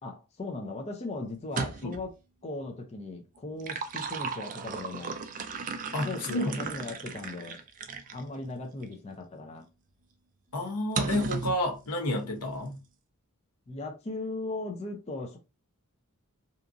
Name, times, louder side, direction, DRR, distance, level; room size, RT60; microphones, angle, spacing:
voice 1, 0.0-2.1 2.4-5.2 6.0-7.6 8.1-9.7 13.7-15.4, left 2 dB, 30° left, 0.4 m, -38 dB
sound 1, 1.4-2.1 3.4-8.2 8.8-8.9 11.0-11.6, right 5 dB, 35° right, 0.3 m, -35 dB
voice 2, 5.9-6.6 10.5-12.8, left 1 dB, 85° left, 0.8 m, -30 dB
2.8 x 2.5 x 2.4 m
head